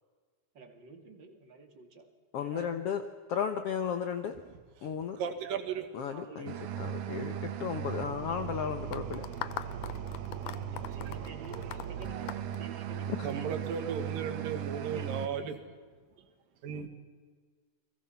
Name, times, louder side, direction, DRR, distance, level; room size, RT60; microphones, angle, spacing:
voice 1, 0.5-2.1 2.3-2.8 5.9-6.9 10.4-14.1 14.7-15.5, right 4 dB, 35° right, 5 dB, 2.4 m, -50 dB
voice 2, 2.3-3.0 3.3-4.4 4.8-5.2 5.9-9.2 13.1-13.3, left 7 dB, 90° left, 8 dB, 1.3 m, -34 dB
voice 3, 5.2-5.9 9.9-10.0 10.9-11.7 12.1-12.2 13.2-15.6 16.6-16.9, right 7 dB, 70° right, 7 dB, 3.3 m, -36 dB
sound 1, 6.5-15.3, right 9 dB, 85° right, 3.2 m, -38 dB
sound 2, 8.9-13.3, left 12 dB, 70° left, 2.1 m, -41 dB
30.0 x 21.5 x 5.8 m, 1.5 s
omnidirectional pair, 4.2 m